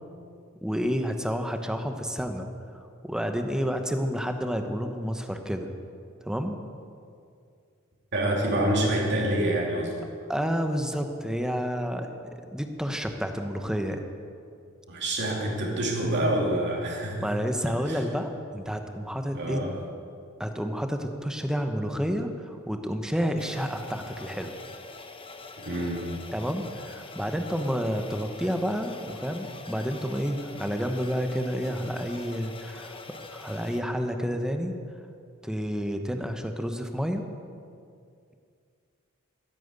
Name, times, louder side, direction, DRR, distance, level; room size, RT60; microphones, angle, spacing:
voice 1, 0.6-2.5 3.0-5.7 6.2-6.6 10.3-14.0 17.2-19.6 20.4-24.5 26.3-34.7 35.4-37.3, equal, 5° right, 5 dB, 1.0 m, -30 dB
voice 2, 8.1-10.1 14.9-17.3 17.9-18.0 19.3-19.8 25.6-26.1, right 1 dB, 55° right, -1 dB, 2.9 m, -27 dB
sound 1, 23.4-33.8, left 3 dB, 25° left, 1.1 m, -44 dB
13.5 x 10.5 x 8.2 m, 2.4 s
head